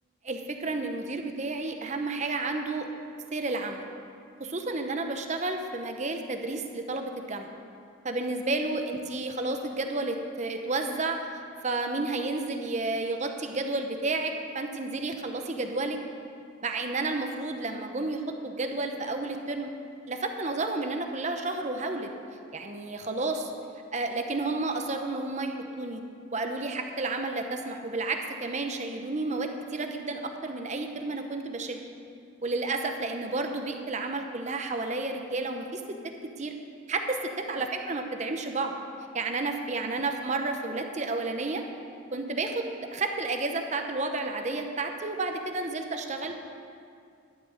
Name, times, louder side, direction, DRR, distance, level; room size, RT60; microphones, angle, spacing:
voice 1, 0.2-2.9 3.3-3.8 4.4-7.5 8.0-11.2 11.6-16.0 16.6-19.7 20.1-22.1 22.5-23.5 23.9-26.0 26.3-31.8 32.4-35.8 36.4-36.5 36.9-37.2 37.5-38.7 39.1-41.6 42.1-42.6 42.9-46.4, right 3 dB, 35° right, 5 dB, 0.8 m, -31 dB
12.0 x 5.9 x 8.2 m, 2.3 s
head